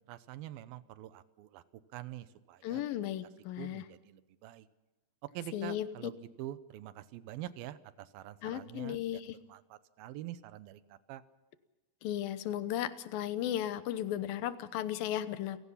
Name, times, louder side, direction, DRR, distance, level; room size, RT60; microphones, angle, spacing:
voice 1, 0.0-1.6 1.9-2.8 3.6-4.7 5.2-11.2, right 13 dB, 90° right, 15 dB, 2.8 m, -46 dB
voice 2, 2.6-3.9 5.5-5.9 8.4-9.4 12.0-15.6, left 11 dB, 80° left, 14 dB, 2.8 m, -35 dB
29.0 x 17.0 x 5.7 m, 1.1 s
omnidirectional pair, 4.1 m